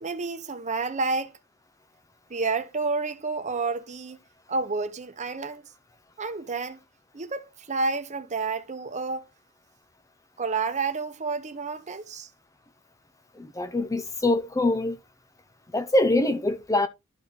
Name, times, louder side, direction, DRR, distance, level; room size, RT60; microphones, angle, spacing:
voice 1, 0.0-1.3 2.3-4.2 4.5-5.7 6.2-6.8 7.1-9.2 10.4-12.3, right 4 dB, 35° right, 0.9 m, -30 dB
voice 2, 13.4-15.0 15.7-16.9, left 2 dB, 15° left, 0.5 m, -24 dB
12.0 x 4.4 x 3.9 m
head